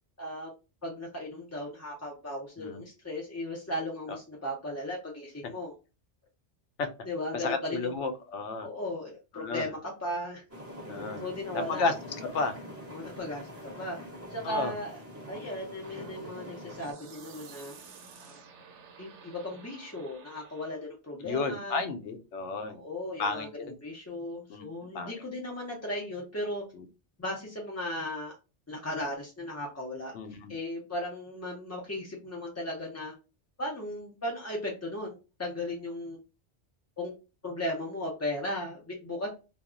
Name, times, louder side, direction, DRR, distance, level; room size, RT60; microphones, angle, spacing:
voice 1, 0.2-0.5 0.8-5.7 7.0-7.9 8.6-10.4 11.2-11.8 12.9-14.0 14.3-15.0 15.3-17.7 18.2-18.4 19.0-21.8 22.8-26.6 27.2-28.4 28.7-30.1 30.5-33.1 33.6-36.2 37.0-37.1 37.4-39.3, left 1 dB, 25° left, -3 dB, 0.3 m, -36 dB
voice 2, 7.3-8.7 9.3-9.7 10.9-11.2 11.5-11.9 12.2-12.6 14.4-14.7 21.2-22.8 23.2-23.7 24.5-25.1 26.7-26.9 30.1-30.6, left 4 dB, 85° left, 7 dB, 0.9 m, -32 dB
sound 1, 10.5-16.9, equal, 15° right, 0.8 m, -44 dB
sound 2, 15.8-20.9, right 6 dB, 80° right, 0.9 m, -51 dB
2.3 x 2.0 x 3.6 m, 0.30 s
omnidirectional pair, 1.2 m